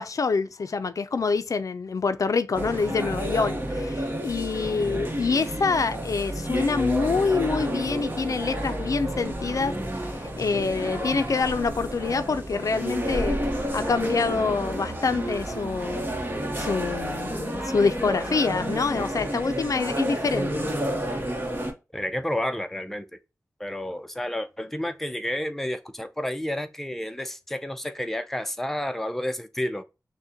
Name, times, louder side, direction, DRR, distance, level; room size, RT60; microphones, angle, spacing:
voice 1, 0.0-9.7 10.4-13.4 13.7-16.0 16.6-20.6, left 4 dB, 65° left, 0.4 m, -26 dB
sound 1, 2.5-21.7, equal, 30° right, 0.9 m, -30 dB
voice 2, 21.9-23.1 23.6-29.8, left 1 dB, 5° left, 0.5 m, -30 dB
6.2 x 2.2 x 2.7 m
wide cardioid pair, 75°, 6 cm